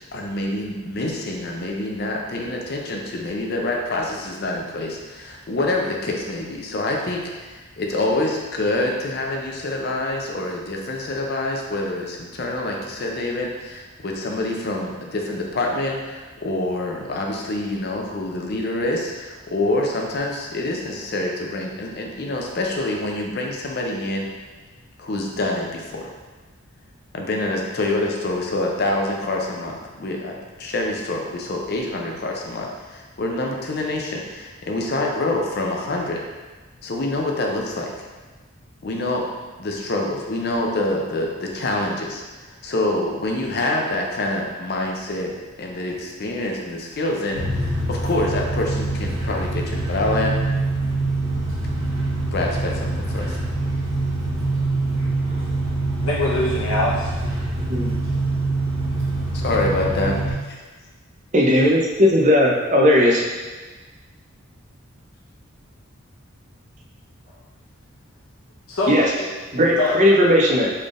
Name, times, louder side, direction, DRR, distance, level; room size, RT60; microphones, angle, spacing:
voice 1, 0.1-24.3 25.0-26.1 27.1-36.2 36.8-37.9 38.8-39.3 39.6-45.3 45.6-50.4 52.3-53.4 59.3-60.6, left 2 dB, 50° left, 0 dB, 0.5 m, -26 dB
sound 1, 47.3-60.3, right 2 dB, 85° right, 1.3 m, -24 dB
voice 2, 56.0-57.1 68.7-69.3 69.8-70.2, left 2 dB, 80° left, -5 dB, 0.9 m, -23 dB
voice 3, 61.3-63.2 68.9-69.1 69.5-70.7, left 1 dB, 35° right, -2 dB, 0.5 m, -17 dB
4.2 x 3.3 x 2.4 m, 1.3 s
head